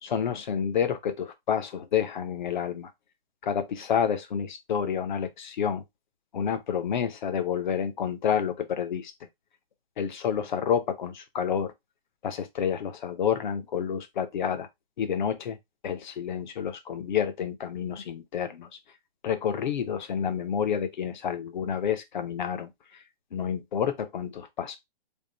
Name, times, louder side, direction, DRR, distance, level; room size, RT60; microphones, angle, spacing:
voice 1, 0.0-2.9 3.4-5.8 6.3-9.1 10.0-11.7 12.2-14.7 15.0-15.6 15.8-18.7 19.2-22.7 23.3-24.8, left 8 dB, 50° left, 0.9 m, -29 dB
3.6 x 2.7 x 3.9 m
hypercardioid pair, 170°, 30 cm